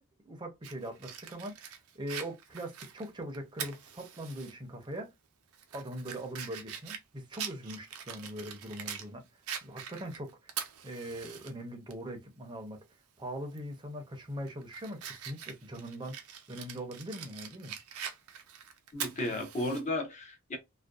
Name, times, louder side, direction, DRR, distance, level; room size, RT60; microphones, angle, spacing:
voice 1, 0.3-1.6 1.9-5.1 5.7-9.2 9.6-10.5 10.8-12.8 13.2-16.2 16.5-17.8, right 1 dB, 20° right, 0.6 m, -41 dB
Fire, 0.6-4.5 4.9-5.0 5.5-9.1 9.5-11.5 11.9-12.0 13.5-13.7 14.2-19.8, right 8 dB, 80° right, 0.5 m, -43 dB
voice 2, 18.9-20.6, left 1 dB, 35° left, 0.6 m, -34 dB
2.5 x 2.1 x 2.3 m
head